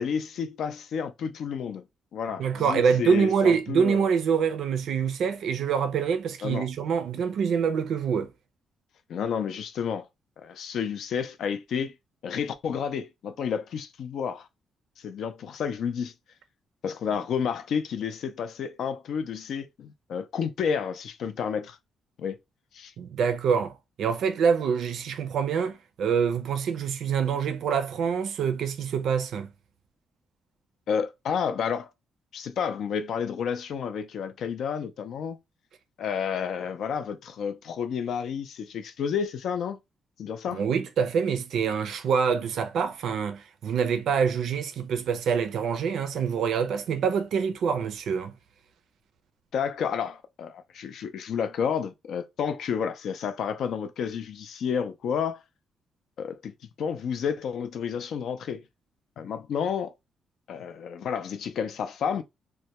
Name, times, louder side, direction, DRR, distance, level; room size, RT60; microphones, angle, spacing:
voice 1, 0.0-1.8 2.1-4.0 6.4-6.7 9.1-10.1 10.4-11.9 12.2-14.5 15.0-16.1 16.8-21.8 22.2-22.4 22.7-22.9 30.9-31.9 32.3-35.4 36.0-39.8 40.2-40.6 49.5-55.4 56.2-58.6 59.2-59.9 60.5-62.2, left 7 dB, 70° left, 0.4 m, -30 dB
voice 2, 2.4-8.3 23.0-29.5 40.5-48.3, right 6 dB, 70° right, 0.4 m, -25 dB
2.2 x 2.1 x 2.8 m
cardioid pair, 130°, 0 cm